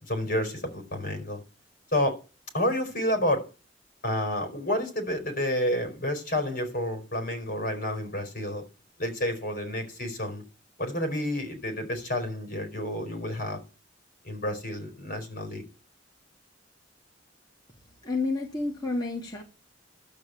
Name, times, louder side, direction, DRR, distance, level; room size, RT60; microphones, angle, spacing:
voice 1, 0.0-1.4 1.9-2.2 2.5-3.5 4.0-8.6 9.0-10.4 10.8-13.6 14.2-15.6, left 1 dB, 50° left, 4.5 m, -29 dB
voice 2, 18.0-19.4, left 3 dB, 20° left, 2.4 m, -30 dB
12.0 x 7.6 x 8.0 m
head